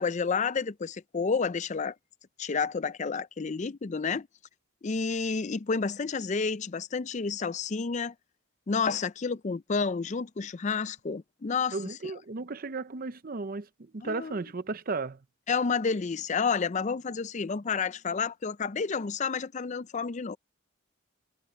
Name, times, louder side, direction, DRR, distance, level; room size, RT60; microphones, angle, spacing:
voice 1, 0.0-1.9 2.4-4.3 4.8-8.1 8.7-11.8 14.0-14.3 15.5-20.4, left 5 dB, 35° left, 0.4 m, -30 dB
voice 2, 11.7-15.2, right 3 dB, 45° right, 0.6 m, -35 dB
head